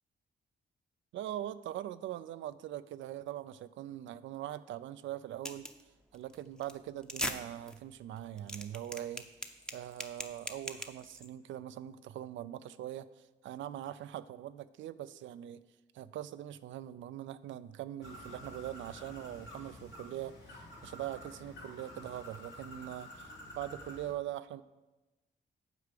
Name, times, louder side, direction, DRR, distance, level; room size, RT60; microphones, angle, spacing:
voice 1, 1.1-5.7 6.1-9.3 9.7-13.1 13.4-15.6 15.9-24.6, right 12 dB, 80° right, 14 dB, 0.4 m, -42 dB
sound 1, 5.4-5.8 6.1-6.3 6.6-6.7 7.0-7.4 7.7-7.8 8.2-11.3, equal, 5° left, 0.7 m, -39 dB
Bird, 18.0-24.1, left 1 dB, 70° left, 2.7 m, -50 dB
8.3 x 4.7 x 6.6 m, 1.1 s
cardioid pair, 80°, 19 cm